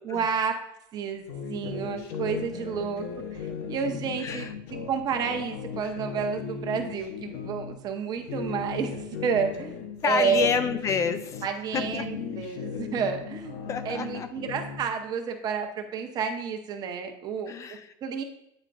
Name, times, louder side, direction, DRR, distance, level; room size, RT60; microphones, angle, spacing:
voice 1, 0.0-0.6 0.9-3.1 3.3-4.5 4.9-9.7 10.0-10.5 11.4-17.5 18.0-18.2, right 6 dB, 35° right, 5 dB, 0.8 m, -30 dB
sound 1, 1.3-7.8 8.2-11.5 11.7-14.9, left 6 dB, 70° left, 1.0 m, -37 dB
voice 2, 10.0-11.4 11.7-12.1 13.7-14.3 17.5-17.9, left 6 dB, 25° left, 11 dB, 0.5 m, -28 dB
8.9 x 4.3 x 2.6 m, 0.79 s
supercardioid pair, 140°, 12 cm